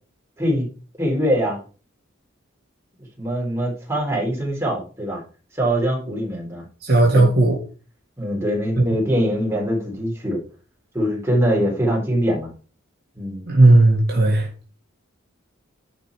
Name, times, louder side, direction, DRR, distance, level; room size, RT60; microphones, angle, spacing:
voice 1, 0.4-0.7 1.0-1.6 3.2-5.2 5.5-6.6 7.1-7.3 8.2-10.4 10.9-12.5 13.2-13.4, equal, 15° right, 3.9 m, -23 dB
voice 2, 6.8-7.6 13.5-14.5, right 2 dB, 50° right, 1.8 m, -14 dB
10.5 x 4.5 x 4.8 m
head